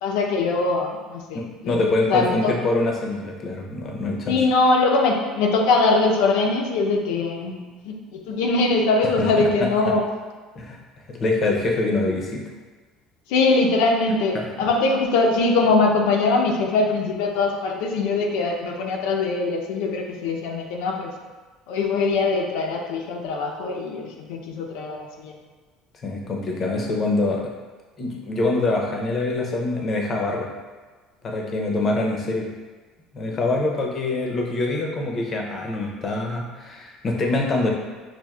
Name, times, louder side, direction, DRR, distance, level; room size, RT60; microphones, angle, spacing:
voice 1, 0.0-1.8 2.1-2.5 4.3-10.0 13.3-21.1 21.7-25.4, left 3 dB, 80° left, 1 dB, 0.6 m, -22 dB
voice 2, 1.3-4.4 9.2-9.5 9.9-10.0 10.6-10.8 11.1-12.4 14.3-14.5 26.0-27.4 28.0-30.5 31.2-32.5 33.1-37.7, left 2 dB, 30° left, 0 dB, 0.6 m, -24 dB
5.8 x 2.5 x 2.3 m, 1.3 s
cardioid pair, 150°, 0 cm